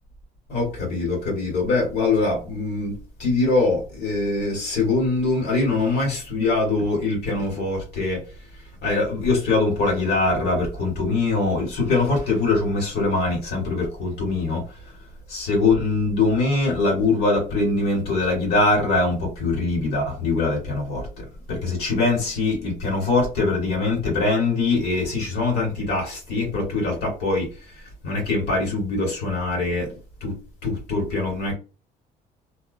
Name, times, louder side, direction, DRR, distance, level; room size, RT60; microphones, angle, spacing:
voice 1, 0.5-8.2 8.8-14.6 15.3-27.5 28.0-29.9 30.2-30.4 30.6-31.5, left 3 dB, 80° left, 1.4 m, -23 dB
2.5 x 2.0 x 2.5 m
cardioid pair, 110°, 17 cm